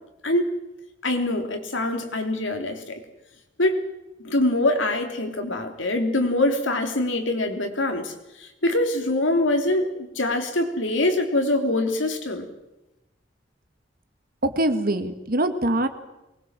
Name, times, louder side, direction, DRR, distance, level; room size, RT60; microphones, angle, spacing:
voice 1, 0.2-0.5 1.0-2.8 3.6-3.8 4.2-8.1 8.6-12.5, left 1 dB, 80° left, 5 dB, 3.3 m, -24 dB
voice 2, 14.4-15.9, right 1 dB, 50° right, 8 dB, 1.9 m, -23 dB
23.0 x 20.5 x 7.5 m, 0.98 s
head